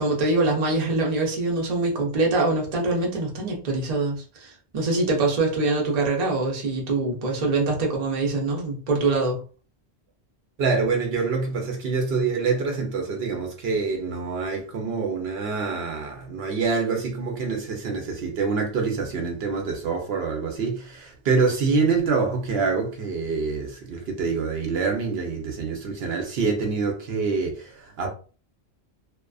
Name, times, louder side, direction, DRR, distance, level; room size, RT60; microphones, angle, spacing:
voice 1, 0.0-9.4, right 3 dB, 45° right, 0.7 m, -24 dB
voice 2, 10.6-28.1, right 4 dB, 70° right, 0.8 m, -26 dB
2.4 x 2.3 x 2.3 m
omnidirectional pair, 1.1 m